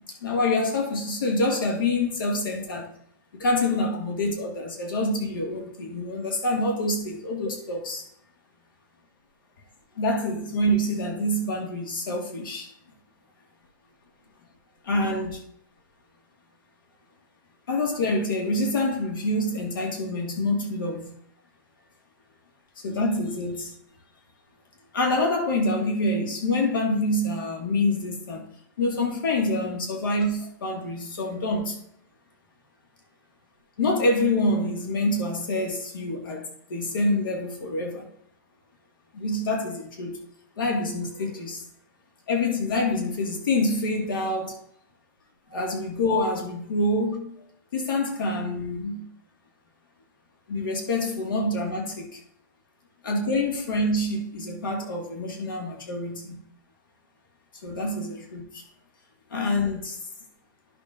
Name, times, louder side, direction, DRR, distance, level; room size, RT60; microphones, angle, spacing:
voice 1, 0.0-2.9 3.3-8.1 10.0-12.7 14.8-15.4 17.7-21.1 22.8-23.7 24.9-28.5 28.8-31.8 33.8-38.1 39.1-40.2 40.6-41.6 42.3-44.6 45.5-47.3 47.7-49.0 50.5-52.2 53.0-56.4 57.6-58.6 59.3-60.0, left 2 dB, 85° left, 1.9 m, -26 dB
11.0 x 6.8 x 2.6 m
hypercardioid pair, 175°, 11 cm